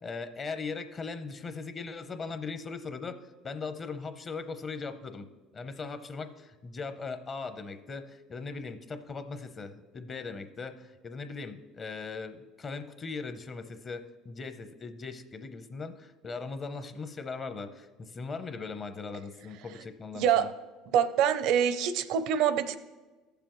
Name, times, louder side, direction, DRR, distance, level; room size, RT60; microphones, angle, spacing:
voice 1, 0.0-3.2 3.4-5.3 5.5-20.5, left 4 dB, 35° left, 9 dB, 0.8 m, -39 dB
voice 2, 20.2-20.5 20.9-22.8, right 9 dB, 70° right, 13 dB, 0.6 m, -25 dB
15.0 x 6.9 x 3.1 m, 1.3 s
supercardioid pair, 100°, 0 cm